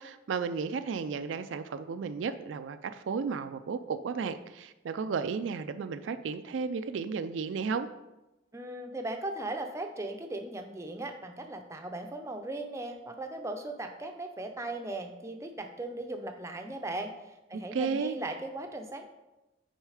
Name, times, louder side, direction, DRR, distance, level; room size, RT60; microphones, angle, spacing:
voice 1, 0.0-7.9 17.7-18.2, right 5 dB, 80° right, 10 dB, 0.4 m, -33 dB
voice 2, 8.5-19.1, right 2 dB, 15° right, 4 dB, 0.5 m, -38 dB
6.4 x 4.5 x 4.9 m, 1.0 s
head